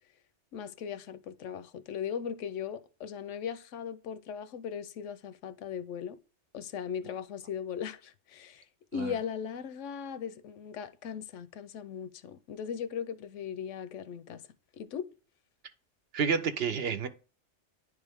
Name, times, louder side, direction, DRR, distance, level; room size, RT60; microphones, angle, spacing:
voice 1, 0.5-6.2 6.5-8.6 8.9-14.4 14.7-15.1, left 7 dB, 80° left, 1.0 m, -38 dB
voice 2, 16.1-17.1, right 6 dB, 60° right, 0.9 m, -29 dB
10.5 x 3.5 x 3.5 m
omnidirectional pair, 1.2 m